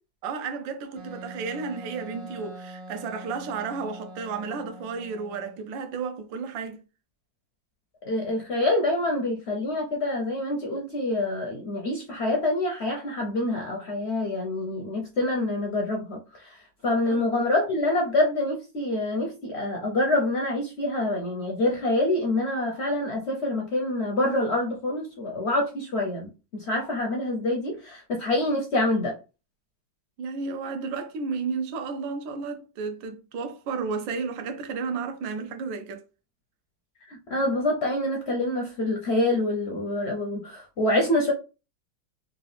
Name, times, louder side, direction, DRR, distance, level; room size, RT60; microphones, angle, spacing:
voice 1, 0.2-6.8 17.1-17.2 30.2-36.0, right 5 dB, 80° right, 1.4 m, -32 dB
Wind instrument woodwind instrument, 1.0-5.6, right 1 dB, 60° right, 1.5 m, -43 dB
voice 2, 8.1-16.2 16.8-29.1 37.1-41.3, left 1 dB, 65° left, 0.6 m, -26 dB
3.8 x 2.5 x 3.3 m
omnidirectional pair, 2.1 m